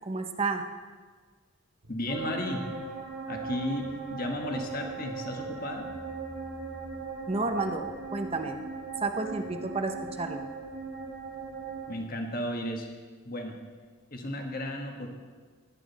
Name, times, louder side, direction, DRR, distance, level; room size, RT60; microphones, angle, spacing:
voice 1, 0.0-0.6 7.3-7.9 8.1-8.6 9.0-10.5, right 3 dB, 25° right, 5 dB, 0.7 m, -31 dB
voice 2, 1.9-2.7 3.3-5.9 11.9-12.9 13.2-13.6 14.1-15.1, left 1 dB, 40° left, 3 dB, 1.4 m, -34 dB
sound 1, 2.1-12.0, right 4 dB, 55° right, 1.6 m, -39 dB
sound 2, 3.3-5.0 5.3-7.1 7.3-9.7, equal, 80° right, 1.8 m, -53 dB
16.5 x 11.0 x 4.1 m, 1.5 s
head